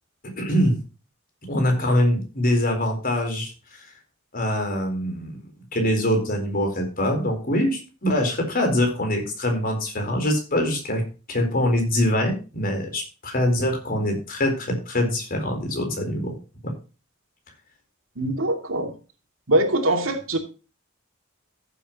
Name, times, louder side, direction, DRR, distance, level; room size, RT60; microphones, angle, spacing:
voice 1, 0.4-0.8 1.5-3.9 4.3-5.4 5.7-11.0 11.3-16.3 16.6-16.7, left 1 dB, 45° left, 4 dB, 4.3 m, -24 dB
voice 2, 18.2-18.9 19.5-20.4, right 1 dB, 75° right, 4 dB, 2.7 m, -22 dB
14.5 x 7.9 x 3.0 m, 0.33 s
head